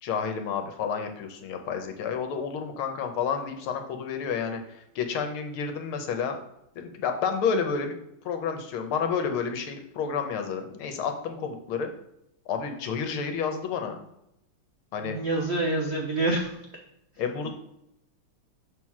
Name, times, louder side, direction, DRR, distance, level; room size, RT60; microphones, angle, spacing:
voice 1, 0.0-6.4 6.7-8.0 8.2-11.9 12.5-14.0 14.9-15.2 17.2-17.5, left 6 dB, 80° left, 6 dB, 1.8 m, -30 dB
voice 2, 15.0-16.8, right 2 dB, 75° right, 2 dB, 0.6 m, -27 dB
6.5 x 3.8 x 6.0 m, 0.82 s
omnidirectional pair, 2.4 m